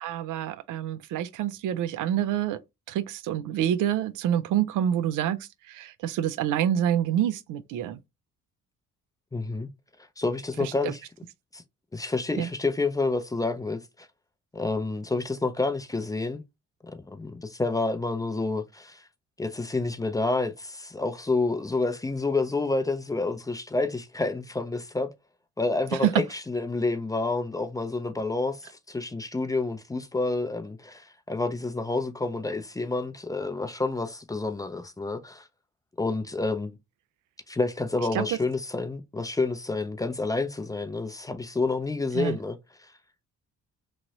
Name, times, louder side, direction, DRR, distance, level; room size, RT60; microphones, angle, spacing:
voice 1, 0.0-2.6 2.9-8.0 10.6-10.9 12.4-12.5 26.0-26.1 38.1-38.4 42.1-42.4, right 10 dB, 85° right, 0.4 m, -27 dB
voice 2, 9.3-9.7 10.2-11.0 11.5-11.6 11.9-14.1 14.5-16.4 16.8-19.1 19.4-25.1 25.6-35.5 36.0-36.7 37.5-42.9, left 3 dB, 10° left, 0.4 m, -29 dB
3.1 x 2.6 x 2.8 m
cardioid pair, 90°, 30 cm